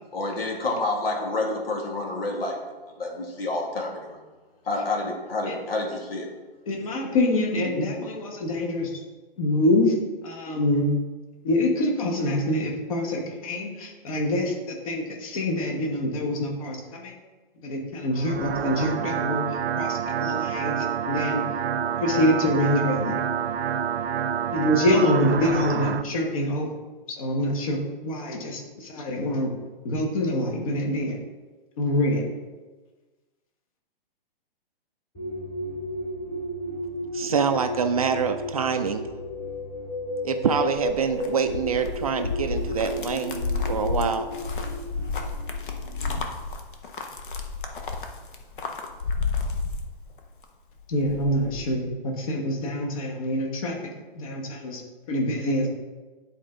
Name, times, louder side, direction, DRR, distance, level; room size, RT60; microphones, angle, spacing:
voice 1, 0.1-2.6 3.0-4.2 4.7-6.3, left 2 dB, 75° left, 1 dB, 2.1 m, -28 dB
voice 2, 6.7-8.9 9.4-9.9 10.2-10.9 11.4-17.1 17.6-19.4 19.8-21.4 22.0-23.2 24.5-26.7 27.2-29.5 29.8-31.2 31.8-32.2 50.9-53.8 54.1-54.8 55.1-55.7, left 1 dB, 35° left, 1 dB, 1.3 m, -25 dB
sound 1, 18.1-26.0, right 8 dB, 85° right, 0.6 m, -28 dB
sound 2, 35.1-46.2, equal, 15° left, 2.4 m, -33 dB
voice 3, 37.1-39.1 40.2-43.4 43.7-44.3, right 6 dB, 40° right, 7 dB, 0.4 m, -25 dB
sound 3, 40.5-50.4 50.8-51.7, left 4 dB, 60° left, 1.1 m, -31 dB
10.0 x 4.5 x 3.8 m, 1.3 s
hypercardioid pair, 170°, 29 cm